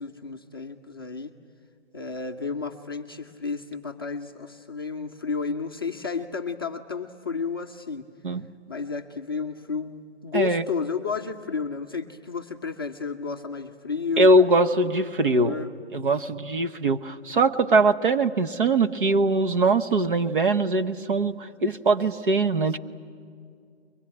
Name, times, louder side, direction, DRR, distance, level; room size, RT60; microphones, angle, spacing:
voice 1, 0.0-1.3 1.9-8.1 8.7-14.3 15.3-15.7, left 5 dB, 20° left, 0 dB, 0.6 m, -32 dB
voice 2, 10.3-10.6 14.2-15.5 15.9-22.8, right 2 dB, 50° right, 8 dB, 1.1 m, -22 dB
23.0 x 20.5 x 9.9 m, 2.3 s
hypercardioid pair, 165°, 35 cm